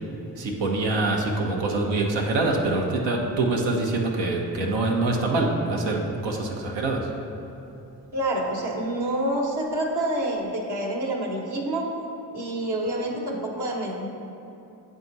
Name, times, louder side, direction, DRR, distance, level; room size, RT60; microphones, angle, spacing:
voice 1, 0.3-7.1, right 2 dB, 80° right, 0 dB, 1.0 m, -25 dB
voice 2, 8.1-11.9 12.3-14.1, right 1 dB, 65° right, -2 dB, 1.4 m, -27 dB
9.0 x 3.7 x 4.0 m, 3.0 s
supercardioid pair, 45°, 43 cm